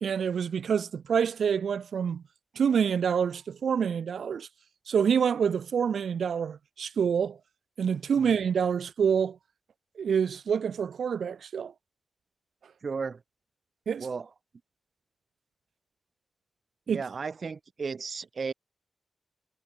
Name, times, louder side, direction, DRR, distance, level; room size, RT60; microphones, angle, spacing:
voice 1, 0.0-2.2 2.5-4.5 4.9-7.4 7.8-9.4 10.0-11.7 13.9-14.1 16.9-17.0, right 7 dB, 65° right, 1.3 m, -27 dB
voice 2, 12.8-13.2 14.0-14.3 16.9-18.5, right 5 dB, 40° right, 1.0 m, -34 dB
wide cardioid pair, 165°, 0 cm